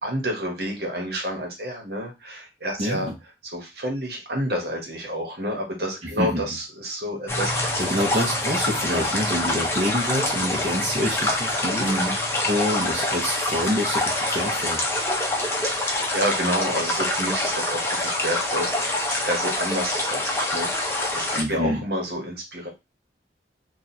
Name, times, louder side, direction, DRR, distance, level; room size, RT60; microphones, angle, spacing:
voice 1, 0.0-3.1 3.5-7.8 8.9-9.1 11.8-12.1 15.7-20.7 21.1-22.7, equal, 60° right, 1 dB, 1.2 m, -29 dB
voice 2, 2.8-3.1 6.0-6.6 7.8-11.9 12.5-14.8 21.4-21.8, equal, 35° right, -4 dB, 0.8 m, -27 dB
sound 1, 7.3-21.4, left 1 dB, 15° left, 0.7 m, -25 dB
3.0 x 2.4 x 4.1 m, 0.24 s
head